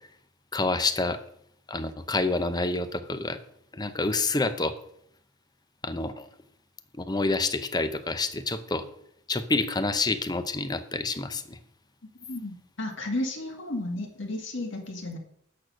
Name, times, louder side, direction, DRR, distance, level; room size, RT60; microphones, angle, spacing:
voice 1, 0.5-1.2 1.7-3.4 3.7-4.7 5.8-6.3 6.9-8.9 9.3-11.6, left 3 dB, 20° left, 11 dB, 0.7 m, -28 dB
voice 2, 12.3-15.2, left 1 dB, 65° left, 3 dB, 2.1 m, -33 dB
8.8 x 6.1 x 6.4 m, 0.70 s
head